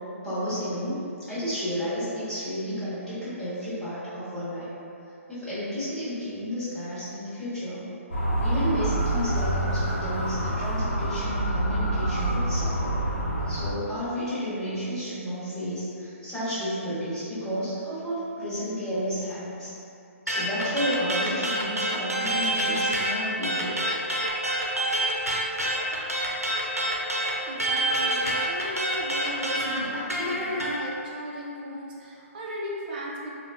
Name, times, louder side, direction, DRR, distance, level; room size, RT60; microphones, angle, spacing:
voice 1, 0.2-4.7 5.3-7.8 8.4-13.0 13.4-19.7 20.2-23.9, equal, 5° left, -16 dB, 1.2 m, -32 dB
Motor vehicle (road) / Siren, 8.1-13.7, right 1 dB, 50° left, 0.9 m, -27 dB
sound 1, 20.3-23.1 23.4-30.8, right 1 dB, 90° right, 0.6 m, -27 dB
voice 2, 27.4-33.4, equal, 35° right, -4 dB, 0.5 m, -37 dB
3.9 x 2.3 x 2.4 m, 2.7 s
figure-of-eight pair, 135°, 8 cm